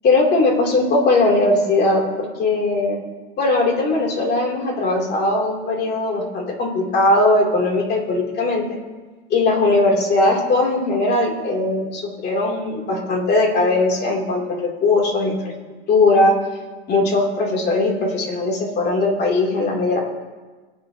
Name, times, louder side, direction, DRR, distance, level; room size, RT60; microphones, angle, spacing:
voice 1, 0.0-3.0 3.4-8.6 9.3-15.5 15.9-16.4 16.9-20.0, left 2 dB, 35° left, -1 dB, 2.9 m, -19 dB
20.0 x 9.7 x 2.8 m, 1.3 s
supercardioid pair, 135°, 30 cm